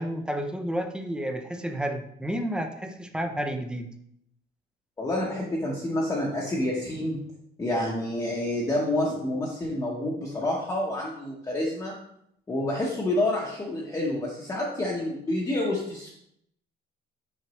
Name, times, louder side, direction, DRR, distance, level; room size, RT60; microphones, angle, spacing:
voice 1, 0.0-3.9, equal, 5° right, 6 dB, 0.4 m, -31 dB
voice 2, 5.0-7.2 7.6-12.0 12.5-16.1, left 1 dB, 15° left, -4 dB, 0.8 m, -28 dB
6.1 x 5.8 x 2.9 m, 0.74 s
cardioid pair, 175°, 20 cm